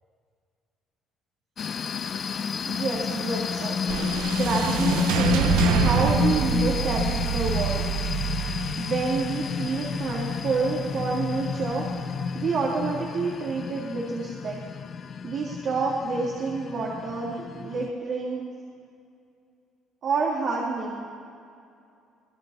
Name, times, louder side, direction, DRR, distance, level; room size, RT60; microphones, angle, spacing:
sound 1, 1.6-17.9, left 6 dB, 45° left, 0.9 m, -30 dB
voice 1, 2.7-3.8 4.4-7.9 8.8-11.8 12.3-14.6 15.2-18.4 20.0-21.1, right 4 dB, 60° right, -3 dB, 3.3 m, -28 dB
sound 2, 3.9-12.3, right 8 dB, 85° right, 1.2 m, -28 dB
24.5 x 21.5 x 6.0 m, 2.5 s
supercardioid pair, 85°, 0 cm